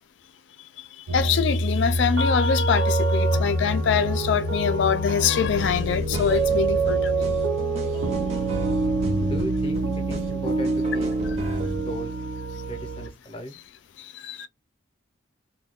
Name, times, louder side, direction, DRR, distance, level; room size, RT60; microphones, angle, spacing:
voice 1, 1.1-7.3 14.2-14.5, left 7 dB, 70° left, 0.3 m, -24 dB
sound 1, 1.1-13.1, right 2 dB, 70° right, 0.6 m, -25 dB
sound 2, 5.1-11.8, right 1 dB, 35° right, 0.7 m, -33 dB
voice 2, 9.2-11.1 11.7-12.1 12.7-13.6, equal, 30° left, 0.6 m, -36 dB
2.3 x 2.2 x 3.4 m
head